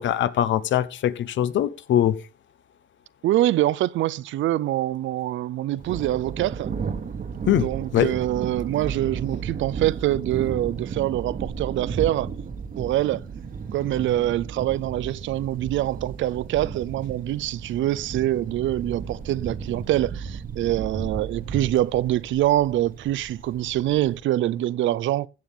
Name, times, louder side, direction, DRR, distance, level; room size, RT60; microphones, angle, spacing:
voice 1, 0.0-2.2 7.5-7.7 7.9-8.1, left 11 dB, 70° left, 0.9 m, -22 dB
voice 2, 3.2-6.7 7.4-12.3 12.8-13.2 13.7-25.3, right 14 dB, 75° right, 0.5 m, -25 dB
Thunder, 5.8-24.2, right 6 dB, 45° right, 1.3 m, -34 dB
15.0 x 7.2 x 3.7 m
cardioid pair, 90°, 20 cm